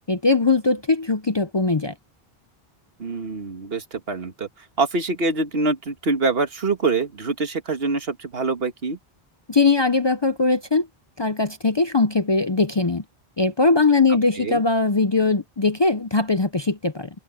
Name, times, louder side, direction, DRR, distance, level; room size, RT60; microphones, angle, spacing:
voice 1, 0.1-1.9 9.5-10.9 11.2-13.0 13.4-17.1, left 3 dB, 30° left, 0.6 m, -20 dB
voice 2, 3.0-9.0 14.4-14.6, right 3 dB, 70° right, 1.8 m, -25 dB
omnidirectional pair, 1.0 m